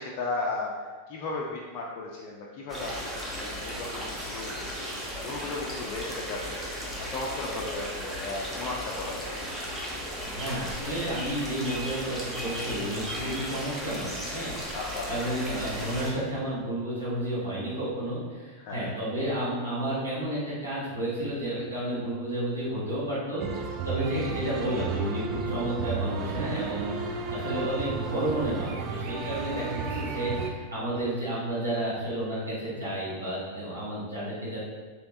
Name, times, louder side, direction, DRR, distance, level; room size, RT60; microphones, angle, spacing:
voice 1, 0.0-3.2 3.4-9.3 14.7-15.1 18.6-18.9, left 3 dB, 40° left, -3 dB, 0.4 m, -36 dB
sound 1, 2.7-16.1, equal, 15° right, 0.7 m, -35 dB
voice 2, 10.2-14.8 15.1-34.6, right 1 dB, 80° right, -10 dB, 1.3 m, -31 dB
sound 2, 23.4-30.5, right 4 dB, 35° right, 0.3 m, -33 dB
3.2 x 3.0 x 2.7 m, 1.4 s
figure-of-eight pair, 90°, 0 cm